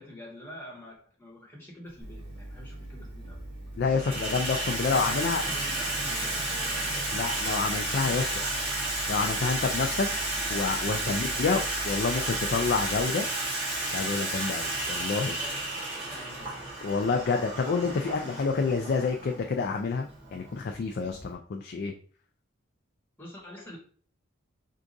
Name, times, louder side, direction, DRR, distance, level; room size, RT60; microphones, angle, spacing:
voice 1, 0.0-3.5 5.1-6.5 7.9-8.7 10.9-11.2 15.2-16.7 23.2-23.8, left 1 dB, 10° left, -4 dB, 1.3 m, -46 dB
Water tap faucet / Sink (filling or washing), 2.0-2.1 3.0-3.4 3.7-21.3, right 2 dB, 30° right, 1.7 m, -32 dB
sound 1, 2.0-13.0, right 1 dB, 60° right, 1.1 m, -43 dB
voice 2, 3.8-5.4 7.1-8.3 9.1-10.1 10.5-13.2 13.9-15.4 16.8-21.9, left 4 dB, 50° left, 3 dB, 0.3 m, -28 dB
4.6 x 2.4 x 2.6 m, 0.43 s
head